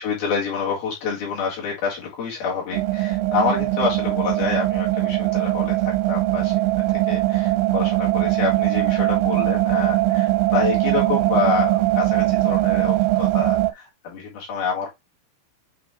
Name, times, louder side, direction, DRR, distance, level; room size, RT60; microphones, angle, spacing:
voice 1, 0.0-6.5 6.9-14.9, left 5 dB, 55° left, 3.4 m, -27 dB
sound 1, 2.7-13.7, right 18 dB, 90° right, 3.2 m, -21 dB
8.8 x 3.2 x 3.6 m
omnidirectional pair, 5.6 m